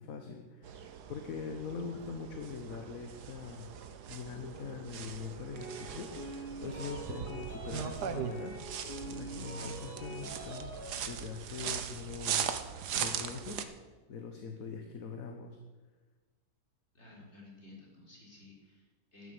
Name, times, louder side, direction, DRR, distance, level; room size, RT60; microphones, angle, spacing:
voice 1, 0.0-3.7 4.1-13.7 14.1-15.6, left 5 dB, 60° left, 5 dB, 1.6 m, -43 dB
sound 1, 0.6-13.6, right 8 dB, 85° right, 1.5 m, -40 dB
sound 2, 5.5-11.0, right 2 dB, 35° right, 3.6 m, -45 dB
voice 2, 16.9-19.3, left 2 dB, 40° left, -3 dB, 4.6 m, -54 dB
11.5 x 9.7 x 8.1 m, 1.3 s
omnidirectional pair, 1.7 m